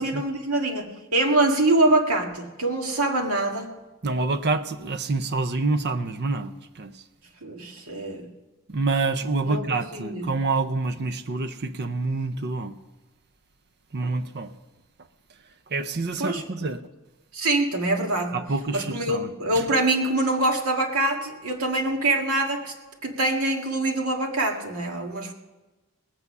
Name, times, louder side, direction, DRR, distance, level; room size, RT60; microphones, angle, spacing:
voice 1, 0.0-3.8 7.4-8.3 9.4-9.7 9.9-10.3 16.2-16.7 17.3-18.4 18.7-22.7 23.0-25.3, right 2 dB, 80° right, 1.9 m, -24 dB
voice 2, 4.0-7.0 8.7-12.7 13.9-14.5 15.7-16.8 18.3-19.7, right 3 dB, 50° right, 0.7 m, -27 dB
19.5 x 8.4 x 5.5 m
head